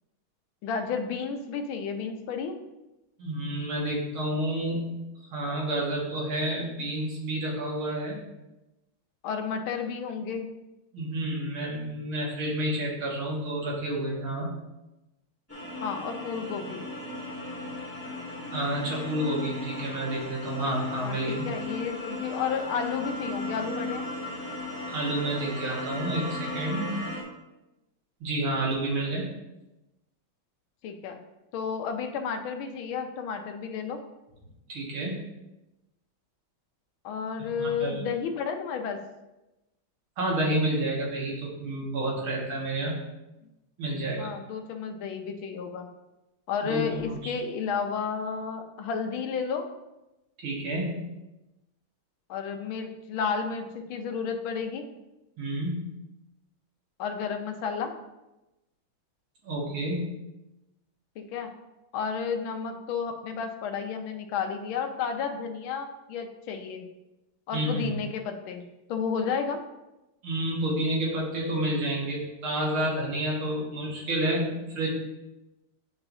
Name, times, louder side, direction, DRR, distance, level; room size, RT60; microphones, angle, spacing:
voice 1, 0.6-2.6 9.2-10.5 15.8-16.8 21.0-24.1 30.8-31.2 31.5-34.0 37.0-39.0 44.2-45.9 46.5-49.7 52.3-54.8 57.0-57.9 61.2-61.5 61.9-66.8 67.5-69.6, left 6 dB, 75° left, 5 dB, 1.5 m, -32 dB
voice 2, 3.2-5.0 5.3-8.2 10.9-14.5 18.5-21.4 24.9-27.1 28.2-29.3 34.7-35.2 37.4-38.0 40.2-43.0 43.8-44.3 46.6-47.3 50.4-51.1 55.4-55.8 59.4-60.1 67.5-67.9 70.2-74.9, right 1 dB, 75° right, -4 dB, 2.6 m, -30 dB
sound 1, 15.5-27.2, left 2 dB, 10° left, 1.5 m, -36 dB
8.7 x 5.9 x 2.7 m, 0.99 s
omnidirectional pair, 2.3 m